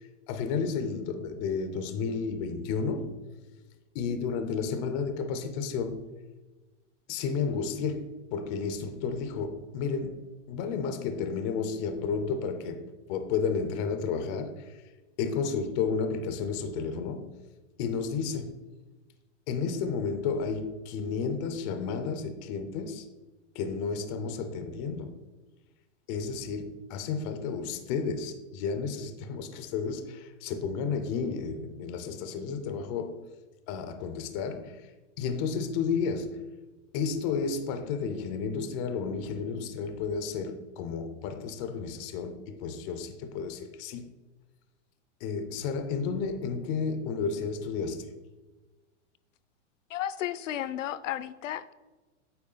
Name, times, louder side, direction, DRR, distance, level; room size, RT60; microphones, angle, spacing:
voice 1, 0.3-3.2 3.9-6.1 7.1-14.6 15.2-17.4 17.8-18.6 19.5-23.0 23.6-25.2 26.1-33.3 33.7-34.8 35.2-36.5 36.9-44.1 45.2-48.1, left 5 dB, 30° left, 0.4 m, -32 dB
voice 2, 49.9-51.7, left 12 dB, 85° left, 0.6 m, -33 dB
8.5 x 3.5 x 3.9 m
supercardioid pair, 150°, 37 cm